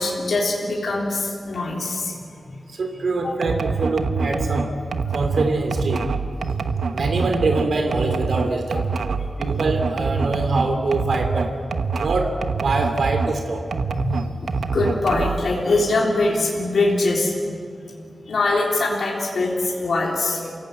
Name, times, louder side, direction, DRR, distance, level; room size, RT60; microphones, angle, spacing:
voice 1, 0.0-2.1 2.5-2.6 3.2-3.3 9.2-9.3 14.0-17.6 18.3-20.6, left 2 dB, 70° left, -3 dB, 3.6 m, -23 dB
voice 2, 2.8-4.7 5.1-6.0 6.9-8.8 9.4-11.5 12.0-12.3 12.6-13.6, right 3 dB, 65° right, 4 dB, 3.0 m, -24 dB
sound 1, 3.4-13.4 13.7-15.5, right 5 dB, 85° right, 1.0 m, -25 dB
27.5 x 17.5 x 8.9 m, 2.3 s
wide cardioid pair, 160°, 0 cm